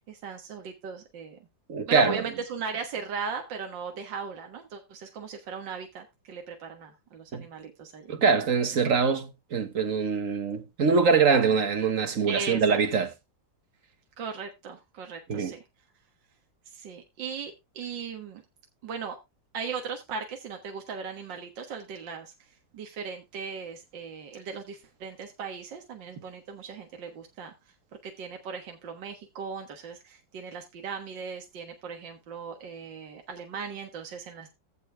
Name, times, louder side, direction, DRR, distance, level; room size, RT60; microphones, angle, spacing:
voice 1, 0.1-1.4 1.9-8.1 12.3-12.8 14.2-15.6 16.7-18.4 18.8-19.2 19.5-27.7 28.0-34.5, right 6 dB, 65° right, 2.1 m, -38 dB
voice 2, 1.7-2.2 7.3-7.5 8.1-13.1 15.3-15.5, right 5 dB, 45° right, 1.4 m, -24 dB
15.0 x 5.5 x 3.4 m
omnidirectional pair, 2.1 m